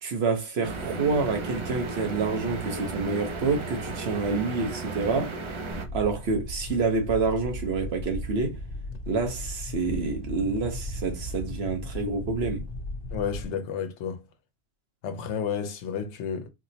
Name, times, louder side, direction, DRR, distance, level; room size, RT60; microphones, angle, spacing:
voice 1, 0.0-5.4 5.9-8.6 9.1-12.6, right 4 dB, 65° right, 1.1 m, -28 dB
sound 1, 0.6-5.9, right 3 dB, 45° right, 0.4 m, -34 dB
sound 2, 5.7-13.5, equal, 60° left, 0.9 m, -36 dB
voice 2, 13.1-14.2 15.0-16.5, left 7 dB, 85° left, 1.0 m, -31 dB
4.2 x 2.0 x 2.7 m
omnidirectional pair, 1.1 m